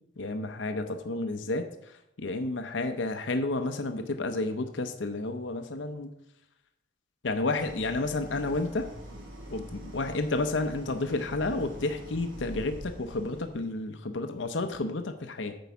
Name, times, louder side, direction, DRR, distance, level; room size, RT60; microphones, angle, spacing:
voice 1, 0.2-1.7 2.2-6.1 7.2-8.9 9.5-15.6, left 2 dB, 65° left, 7 dB, 0.7 m, -31 dB
Idling, 7.5-13.6, right 1 dB, 85° right, 2.6 m, -44 dB
9.3 x 4.7 x 6.9 m, 0.81 s
head